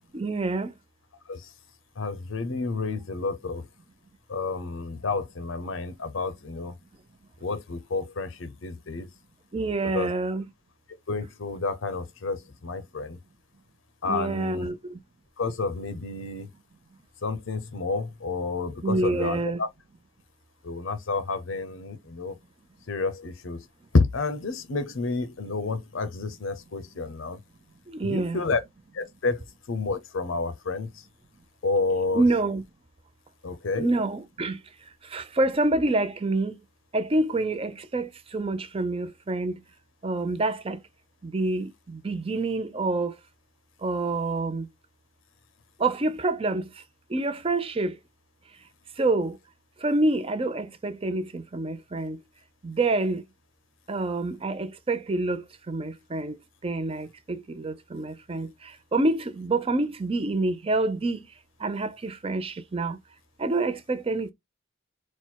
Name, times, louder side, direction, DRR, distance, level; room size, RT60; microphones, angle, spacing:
voice 1, 0.1-0.7 9.5-10.4 14.1-14.8 18.8-19.6 27.9-28.4 32.1-32.6 33.8-34.6 35.1-36.5 36.9-39.5 40.0-40.8 41.2-43.1 43.8-44.7 45.8-46.6 47.1-47.9 49.0-49.4 49.8-52.2 52.6-53.2 53.9-56.3 56.6-58.5 58.9-61.2 61.6-63.0 63.4-64.3, right 2 dB, 25° right, 0.5 m, -27 dB
voice 2, 2.0-3.6 4.3-6.7 7.4-9.1 9.9-10.1 11.1-13.2 14.0-14.7 15.4-16.5 17.2-19.7 20.6-22.4 22.9-23.7 23.9-27.4 28.0-28.6 28.9-29.4 29.7-31.0 31.6-32.2 33.4-33.9, left 3 dB, 70° left, 0.6 m, -30 dB
4.3 x 2.1 x 4.4 m
head